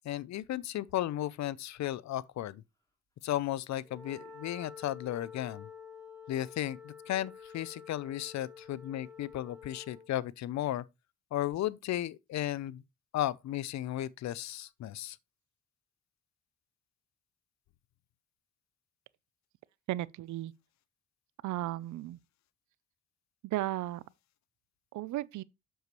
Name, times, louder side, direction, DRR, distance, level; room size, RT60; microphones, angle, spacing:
voice 1, 0.0-2.6 3.2-5.7 6.3-10.8 11.3-12.8 13.1-15.2, left 13 dB, 65° left, 0.6 m, -35 dB
Wind instrument woodwind instrument, 3.8-10.1, left 6 dB, 10° left, 2.9 m, -49 dB
voice 2, 19.9-20.5 21.4-22.2 23.4-24.0 24.9-25.4, right 15 dB, 75° right, 0.6 m, -35 dB
7.9 x 6.7 x 3.1 m
cardioid pair, 90°, 30 cm